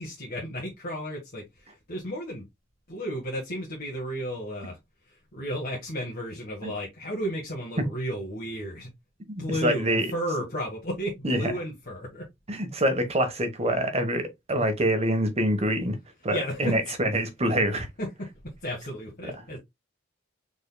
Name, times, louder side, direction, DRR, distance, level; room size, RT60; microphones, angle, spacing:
voice 1, 0.0-2.5 2.9-4.8 5.1-8.9 9.4-12.2 16.3-16.9 18.0-18.3 18.6-19.6, equal, 50° left, 1.4 m, -33 dB
voice 2, 9.3-10.1 11.2-11.5 12.5-16.0 16.2-17.9 19.2-19.3, right 1 dB, 35° right, 1.1 m, -25 dB
5.0 x 4.0 x 2.2 m
head